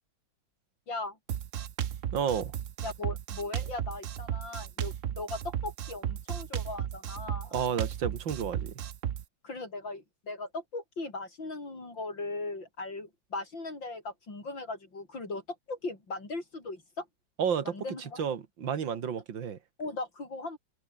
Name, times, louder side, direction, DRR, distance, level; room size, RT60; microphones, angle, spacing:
voice 1, 0.9-1.2 2.8-7.5 9.4-15.4 15.7-17.1 17.7-18.3 19.8-20.6, left 2 dB, 85° left, 7.0 m, -38 dB
Drum kit, 1.3-9.2, right 10 dB, 55° right, 1.0 m, -35 dB
voice 2, 2.1-2.5 7.5-8.7 17.4-17.7 18.2-19.6, right 7 dB, 85° right, 2.5 m, -31 dB
open air
omnidirectional pair, 2.0 m